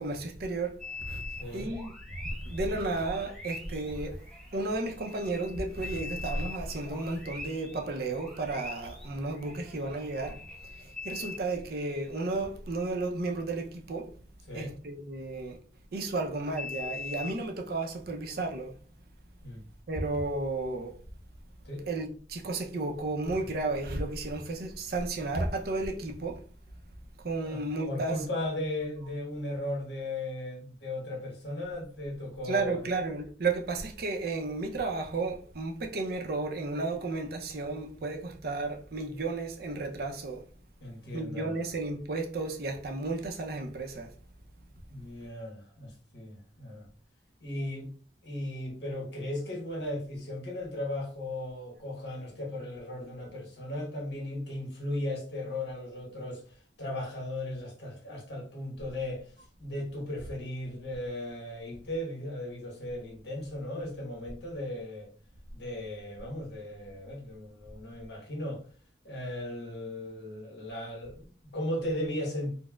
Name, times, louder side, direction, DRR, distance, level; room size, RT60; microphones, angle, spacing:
voice 1, 0.0-1.2 1.5-1.9 2.5-4.2 4.5-14.1 14.5-15.6 15.9-18.8 19.9-21.0 21.9-26.4 27.2-28.3 32.4-40.4 41.1-44.1, right 2 dB, 55° right, 0.5 m, -33 dB
sound 1, 0.8-12.3 16.6-17.4, left 4 dB, ahead, 0.7 m, -43 dB
voice 2, 14.5-14.8 19.4-19.6 21.6-21.9 27.4-32.8 40.8-41.6 44.9-46.9 47.4-47.9 48.2-59.3 59.6-65.1 65.5-68.6 69.0-72.5, left 1 dB, 70° left, 1.1 m, -36 dB
4.1 x 2.0 x 2.3 m
head